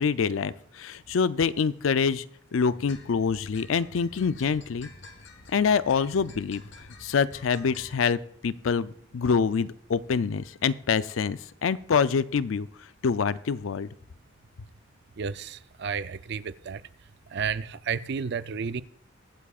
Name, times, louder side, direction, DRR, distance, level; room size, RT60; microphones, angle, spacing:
voice 1, 0.0-2.2 2.5-4.9 5.5-6.6 7.0-12.7 13.0-13.9, left 6 dB, 80° left, 0.4 m, -26 dB
sound 1, 2.7-8.0, left 3 dB, 65° left, 1.3 m, -49 dB
voice 2, 15.2-16.8 17.3-18.8, right 6 dB, 55° right, 0.4 m, -32 dB
22.5 x 8.4 x 2.4 m
head